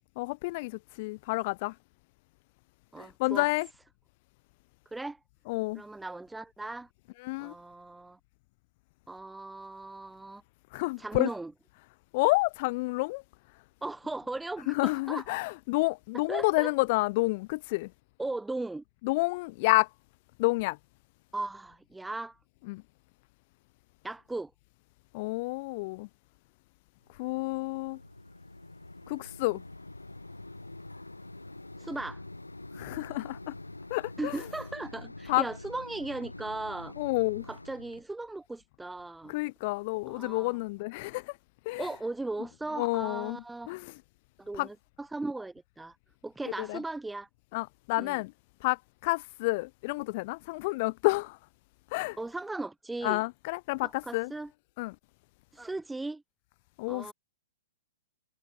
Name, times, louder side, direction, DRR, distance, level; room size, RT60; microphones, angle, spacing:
voice 1, 0.2-1.7 3.0-3.7 5.5-5.8 7.2-7.5 10.7-11.3 12.1-13.2 14.7-17.9 19.0-19.9 20.4-20.8 22.7-22.8 25.1-26.1 27.2-28.0 29.1-29.6 32.8-33.5 33.9-34.3 35.3-35.4 37.0-37.4 39.3-41.2 41.7-41.8 42.8-43.4 43.7-43.9 44.6-44.7 46.6-46.8 47.5-48.3 48.6-48.8 49.0-51.4 51.9-52.2 53.0-54.3 54.8-54.9 56.8-57.1, left 24 dB, 40° left, 0.5 m, -29 dB
voice 2, 2.9-3.5 4.9-5.2 5.7-6.9 7.4-8.2 9.1-10.4 11.0-11.5 13.8-15.3 16.3-16.7 18.2-18.8 21.3-22.4 24.0-24.5 31.8-32.2 34.2-36.9 37.5-39.4 40.1-40.6 41.8-43.8 44.4-46.0 46.2-47.3 48.0-48.2 52.2-53.2 53.8-54.5 55.5-56.2 56.9-57.1, right 2 dB, 5° right, 1.8 m, -37 dB
Mechanisms, 27.0-38.0, left 2 dB, 85° left, 2.9 m, -46 dB
figure-of-eight pair, 110°, 0 cm